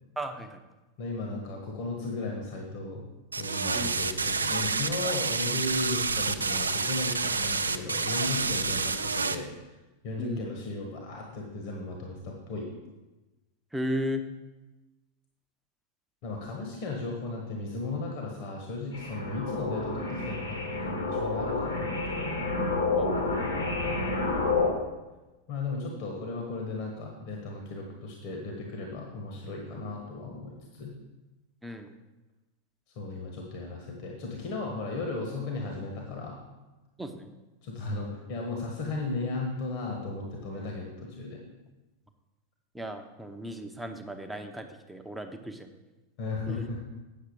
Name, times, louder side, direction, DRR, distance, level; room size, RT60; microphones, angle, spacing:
voice 1, 0.2-0.6 3.7-3.9 10.2-10.5 13.7-14.2 23.0-23.2 31.6-31.9 37.0-37.3 42.7-45.7 46.5-46.7, equal, 5° right, 5 dB, 0.8 m, -35 dB
voice 2, 1.0-3.1 3.4-9.5 10.0-12.7 16.2-22.5 25.5-30.9 32.9-36.4 37.6-41.4 46.2-46.8, left 3 dB, 45° left, 1 dB, 1.4 m, -35 dB
sound 1, 3.3-9.4, right 4 dB, 75° right, 0.4 m, -29 dB
sound 2, 18.9-24.7, left 3 dB, 70° left, 2.0 m, -29 dB
9.1 x 6.6 x 4.8 m, 1.1 s
figure-of-eight pair, 90°, 0 cm